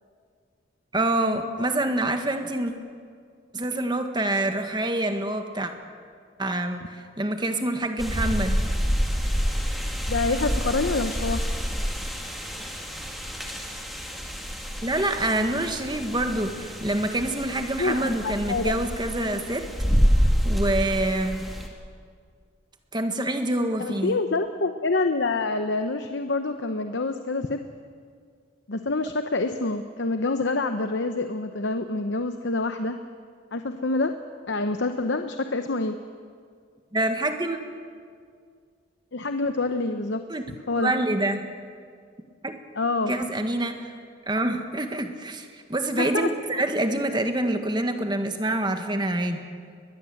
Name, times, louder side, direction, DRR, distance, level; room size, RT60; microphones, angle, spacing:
voice 1, 0.9-2.7 3.5-5.7 6.4-8.6 14.8-19.7 20.4-21.4 22.9-24.2 36.9-37.6 40.3-40.5 40.8-41.4 42.4-42.6 43.1-43.9 44.3-49.4, right 1 dB, 20° right, 6 dB, 1.6 m, -26 dB
sound 1, 8.0-21.7, equal, ahead, 2.1 m, -27 dB
voice 2, 10.1-11.4 17.8-18.7 23.8-27.6 28.7-33.0 33.5-34.1 34.5-36.0 39.1-40.2 40.7-40.9 42.8-43.1 46.0-46.3 46.6-46.7, left 3 dB, 65° left, 7 dB, 0.8 m, -26 dB
22.0 x 21.0 x 7.8 m, 2.1 s
head